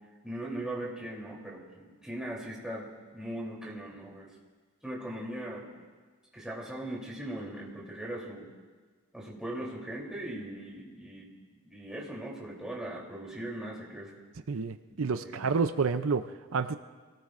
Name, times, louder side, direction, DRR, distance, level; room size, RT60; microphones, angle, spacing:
voice 1, 0.2-4.3 4.8-5.7 6.3-8.5 9.1-11.3 11.6-14.1 15.2-15.4, right 1 dB, 5° right, -4 dB, 3.3 m, -39 dB
voice 2, 14.5-16.7, right 4 dB, 80° right, 9 dB, 0.6 m, -29 dB
28.0 x 18.5 x 2.6 m, 1.4 s
head